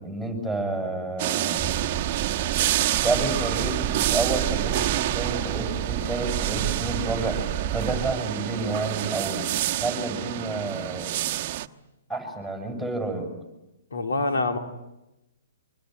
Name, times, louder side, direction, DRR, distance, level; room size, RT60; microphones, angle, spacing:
voice 1, 0.0-1.6 3.0-7.4 7.7-11.2 12.1-13.3, right 2 dB, 5° left, 7.5 m, -30 dB
sound 1, 1.2-11.7, right 14 dB, 40° right, 1.1 m, -28 dB
sound 2, 1.6-8.2, right 9 dB, 20° right, 1.1 m, -31 dB
voice 2, 13.9-14.6, left 3 dB, 85° left, 3.1 m, -25 dB
25.0 x 24.0 x 9.5 m
hypercardioid pair, 140°, 0 cm